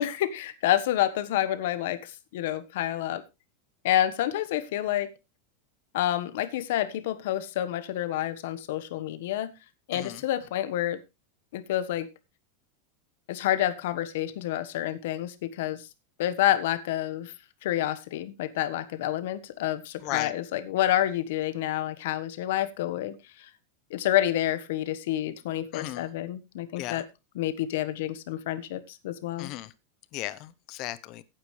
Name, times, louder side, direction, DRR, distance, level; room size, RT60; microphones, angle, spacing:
voice 1, 0.0-3.2 3.8-5.1 5.9-9.5 9.9-11.0 11.5-12.1 13.3-15.8 16.2-17.3 17.6-23.2 23.9-27.0 27.3-29.5, left 12 dB, 70° left, 13 dB, 1.3 m, -28 dB
voice 2, 20.0-20.3 25.7-26.0 26.8-27.0 29.4-29.7 30.1-31.2, left 16 dB, 40° left, 17 dB, 0.9 m, -36 dB
15.0 x 9.0 x 3.3 m, 0.25 s
supercardioid pair, 155°, 0 cm